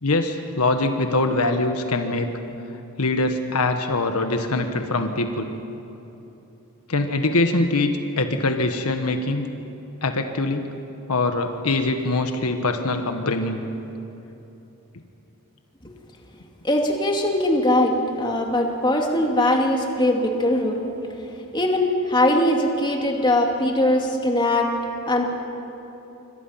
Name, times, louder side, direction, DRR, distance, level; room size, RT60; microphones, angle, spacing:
voice 1, 0.0-2.3 3.0-5.5 6.9-9.5 10.0-10.7 11.1-13.6, left 2 dB, 80° left, 6 dB, 1.5 m, -23 dB
voice 2, 16.6-20.8 21.5-24.7 25.1-25.2, left 1 dB, 20° left, 1 dB, 2.6 m, -21 dB
27.0 x 24.5 x 5.9 m, 3.0 s
head